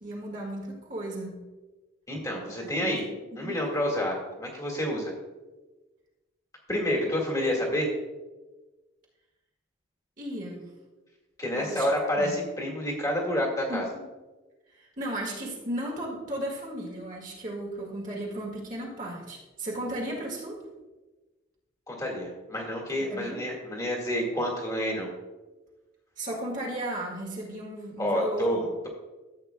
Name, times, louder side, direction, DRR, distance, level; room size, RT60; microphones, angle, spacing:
voice 1, 0.0-1.4 2.6-3.9 10.2-10.7 11.5-11.9 12.2-12.4 13.7-14.0 14.8-20.6 23.0-23.4 26.2-28.6, right 1 dB, 40° right, -3 dB, 1.7 m, -35 dB
voice 2, 2.1-3.0 3.4-5.1 6.7-7.9 11.4-13.8 21.9-25.1 28.0-28.9, equal, 15° left, -2 dB, 1.8 m, -29 dB
13.5 x 8.0 x 2.3 m, 1.2 s
head